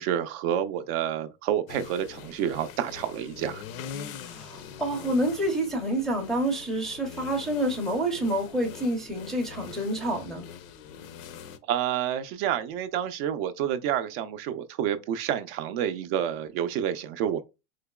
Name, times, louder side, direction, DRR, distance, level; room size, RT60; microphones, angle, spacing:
voice 1, 0.0-3.6 11.7-17.4, right 10 dB, 50° right, 0.4 m, -29 dB
sound 1, 1.7-11.6, left 7 dB, 85° left, 0.7 m, -43 dB
voice 2, 4.3-10.4, right 1 dB, ahead, 0.5 m, -28 dB
3.9 x 2.9 x 2.2 m
supercardioid pair, 150°, 40 cm